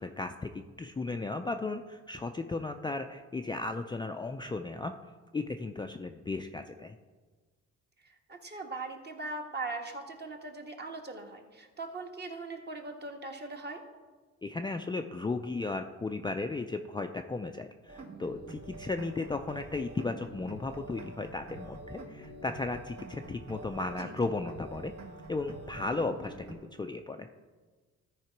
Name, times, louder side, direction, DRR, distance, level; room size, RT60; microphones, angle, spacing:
voice 1, 0.0-5.0 5.3-7.0 14.4-24.9 25.3-27.3, left 3 dB, 15° left, 5 dB, 0.4 m, -35 dB
voice 2, 8.0-13.8 24.0-24.3, right 3 dB, 35° right, 3 dB, 1.4 m, -40 dB
sound 1, 17.9-26.6, right 2 dB, 60° right, 1.5 m, -46 dB
13.5 x 4.9 x 4.6 m, 1.4 s
cardioid pair, 90°, 30 cm